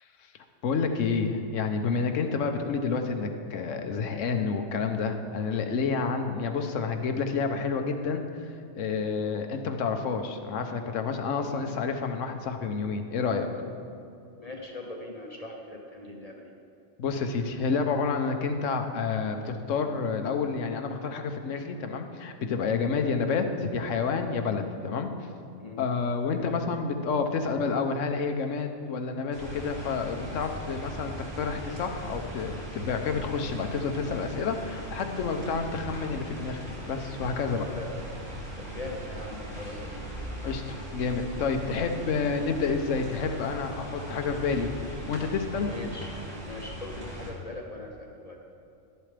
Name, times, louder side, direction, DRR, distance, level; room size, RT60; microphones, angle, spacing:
voice 1, 0.6-8.2 8.8-13.5 17.0-25.1 25.8-36.6 36.9-37.7 40.4-45.7, left 5 dB, 80° left, 6 dB, 1.2 m, -29 dB
voice 2, 14.4-16.5 25.6-25.8 26.3-26.6 37.8-37.9 38.6-40.1 45.6-46.1 46.4-48.4, left 2 dB, 35° left, 0 dB, 0.9 m, -41 dB
sound 1, 29.3-47.3, equal, 55° right, 2.7 m, -39 dB
12.5 x 11.0 x 3.3 m, 2.6 s
omnidirectional pair, 1.3 m